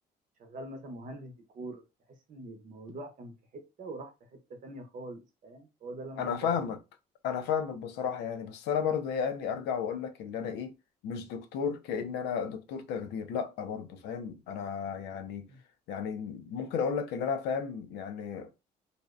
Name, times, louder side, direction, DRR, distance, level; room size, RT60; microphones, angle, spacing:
voice 1, 0.4-1.8 2.3-3.3 3.8-4.1 4.5-6.7 15.5-15.6, right 2 dB, 50° right, 0.7 m, -43 dB
voice 2, 6.2-6.8 7.2-10.7 11.0-15.5 15.9-18.6, left 7 dB, 85° left, 0.4 m, -33 dB
2.5 x 2.0 x 2.4 m
cardioid pair, 110°, 17 cm